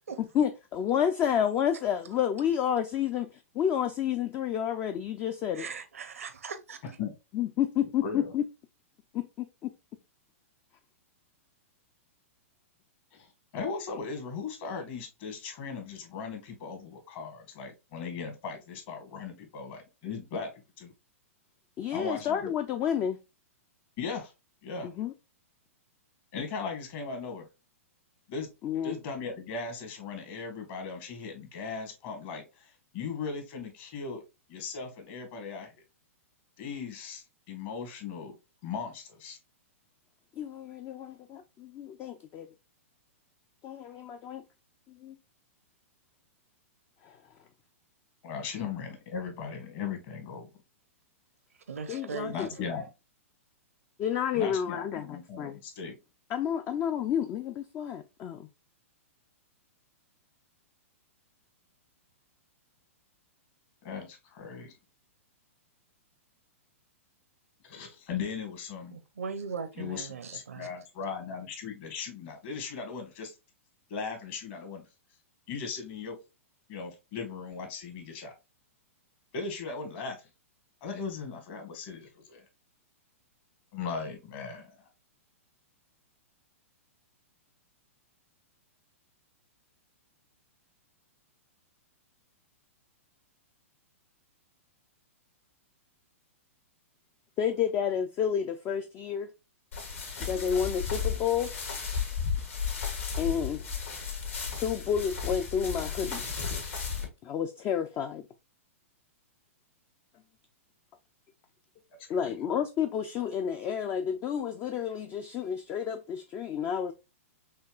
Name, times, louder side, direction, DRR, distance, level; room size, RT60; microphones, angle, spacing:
voice 1, 0.2-5.6 7.3-8.4 9.1-9.7 21.8-23.2 24.8-25.1 28.6-29.0 40.4-42.5 43.6-44.4 45.0-45.2 47.0-47.1 51.9-52.7 54.0-55.6 56.3-58.5 97.4-99.3 100.2-101.5 103.2-103.7 104.5-106.2 107.2-108.2 112.1-116.9, left 8 dB, 30° left, 0.4 m, -30 dB
voice 2, 5.5-6.8 51.7-52.6 68.9-70.7, right 5 dB, 80° right, 0.7 m, -39 dB
voice 3, 8.0-8.3 13.1-20.5 20.8-20.9 21.9-22.5 24.0-24.3 24.6-24.9 26.3-27.5 28.3-28.5 28.8-34.2 34.5-35.7 36.6-38.3 38.6-39.4 48.2-50.5 52.3-52.9 54.3-55.9 63.8-64.7 67.6-69.0 69.8-73.3 73.9-74.8 75.5-76.2 76.7-78.3 79.3-80.2 80.8-82.4 83.7-84.7 112.1-112.4, left 5 dB, 45° left, 1.6 m, -38 dB
sound 1, 99.7-107.1, left 6 dB, 65° left, 1.9 m, -34 dB
5.6 x 2.9 x 2.3 m
hypercardioid pair, 110°, 8 cm